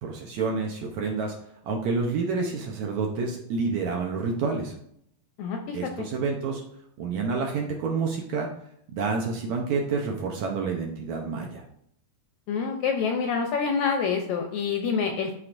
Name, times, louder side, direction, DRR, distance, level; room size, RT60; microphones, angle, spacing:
voice 1, 0.0-1.3 1.6-4.7 5.7-6.6 7.0-8.5 8.9-11.6, right 4 dB, 70° right, 1 dB, 1.8 m, -28 dB
voice 2, 5.4-6.1 12.5-15.3, left 5 dB, 75° left, 3 dB, 1.8 m, -27 dB
13.0 x 4.7 x 2.6 m, 0.71 s
omnidirectional pair, 3.9 m